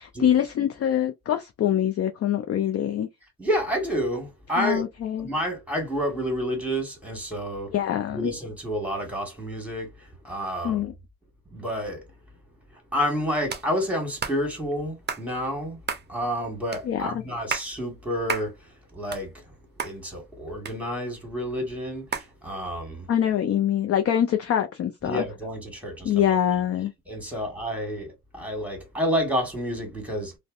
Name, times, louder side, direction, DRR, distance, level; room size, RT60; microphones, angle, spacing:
voice 1, 0.0-3.1 4.6-5.3 7.7-8.3 10.6-10.9 16.8-17.2 23.1-25.2 26.0-26.9, left 10 dB, 35° left, 0.4 m, -24 dB
voice 2, 3.4-4.8 5.2-7.7 8.1-10.8 11.5-12.1 12.7-15.8 16.1-19.5 19.8-23.1 25.0-26.1 27.1-30.3, equal, 5° right, 1.4 m, -29 dB
sound 1, 13.5-13.7 14.2-14.4 15.1-15.3 15.9-16.1 16.7-16.8 17.3-17.7 18.3-18.5 18.9-19.5 19.8-19.9 20.7-21.2 22.1-22.3, right 6 dB, 25° right, 0.6 m, -31 dB
2.5 x 2.1 x 2.4 m
hypercardioid pair, 65°, 45 cm